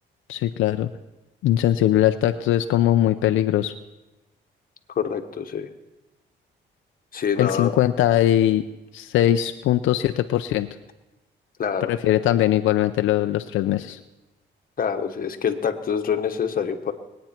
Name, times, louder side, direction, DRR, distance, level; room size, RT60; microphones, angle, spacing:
voice 1, 0.3-0.9 1.4-3.7 7.4-8.6 8.9-10.7 11.9-14.0, left 12 dB, 80° left, 8 dB, 0.5 m, -20 dB
voice 2, 5.0-5.7 7.1-7.7 11.6-11.9 14.8-16.9, left 7 dB, 45° left, 6 dB, 1.2 m, -25 dB
21.0 x 9.3 x 4.4 m, 1.0 s
cardioid pair, 90°, 20 cm